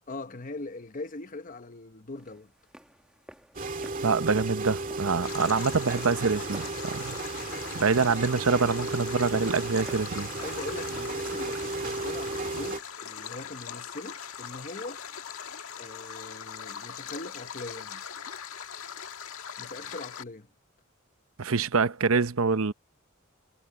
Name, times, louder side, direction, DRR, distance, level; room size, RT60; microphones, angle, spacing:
voice 1, 0.1-2.5 10.3-15.0 15.8-18.0 19.6-20.5, left 2 dB, 40° left, 1.0 m, -41 dB
sound 1, 2.2-13.3, equal, 5° right, 1.5 m, -52 dB
sound 2, 3.5-12.8, right 3 dB, 40° right, 2.1 m, -34 dB
voice 2, 4.0-7.2 7.7-10.3 21.4-22.7, right 4 dB, 80° right, 0.8 m, -25 dB
Stream, 5.2-20.2, left 8 dB, 90° left, 1.7 m, -41 dB
head